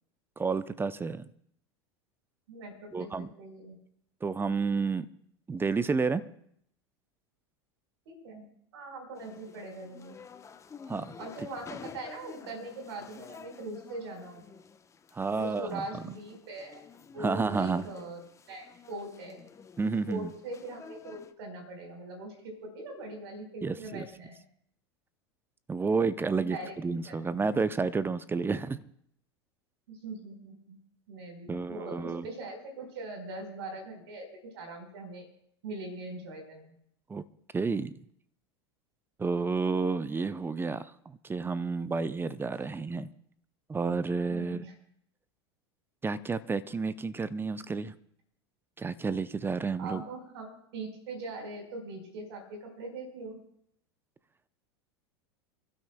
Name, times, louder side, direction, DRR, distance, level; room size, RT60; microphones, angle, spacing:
voice 1, 0.4-1.2 2.9-3.3 4.2-5.1 5.5-6.2 10.9-11.1 15.1-15.8 17.2-17.9 19.8-20.3 23.6-24.1 25.7-28.8 31.5-32.3 37.1-37.2 37.5-37.9 39.2-43.1 43.7-44.6 46.0-47.9 48.8-50.0, right 4 dB, 15° right, 15 dB, 0.6 m, -30 dB
voice 2, 2.5-3.8 8.1-10.2 11.2-14.4 15.3-16.8 17.1-18.2 18.5-19.4 20.1-24.4 26.3-26.7 27.1-27.2 27.5-27.7 29.9-30.8 31.1-34.3 34.5-35.3 35.6-36.7 44.3-44.7 49.8-53.4, right 2 dB, 75° right, 4 dB, 4.4 m, -41 dB
sound 1, 9.1-21.3, left 6 dB, 20° left, 0.9 m, -50 dB
29.5 x 12.5 x 2.2 m, 0.69 s
hypercardioid pair, 90°, 14 cm